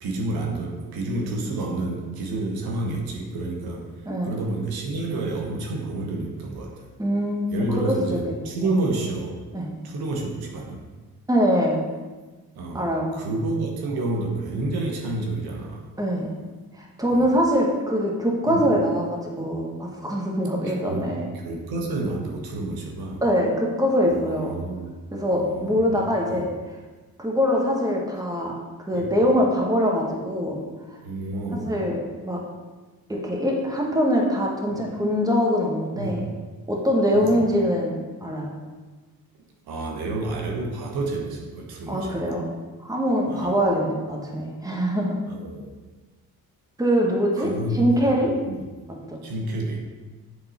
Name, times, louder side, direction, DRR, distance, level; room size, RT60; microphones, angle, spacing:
voice 1, 0.0-3.9 4.2-6.8 7.5-9.4 9.8-10.8 12.6-12.8 13.1-15.8 17.1-17.3 18.5-18.7 20.6-21.0 21.3-23.2 24.1-24.9 25.3-26.5 28.9-29.1 31.0-31.8 34.7-34.8 36.0-36.3 37.1-37.4 39.7-42.4 43.3-43.6 45.3-45.7 47.3-48.1 48.4-48.6 49.2-49.8, right 2 dB, 80° right, 0 dB, 1.2 m, -29 dB
voice 2, 4.0-4.4 7.0-8.7 9.5-9.7 11.3-11.8 12.7-13.1 16.0-16.3 16.8-21.3 23.2-24.5 25.1-26.5 27.2-28.6 28.9-30.6 31.6-32.0 32.2-32.4 33.1-36.2 36.7-37.9 38.2-38.5 41.9-42.5 42.8-45.1 46.8-48.3 49.1-49.2, equal, 10° right, -1 dB, 1.5 m, -23 dB
8.2 x 3.7 x 4.3 m, 1.3 s
cardioid pair, 80°, 37 cm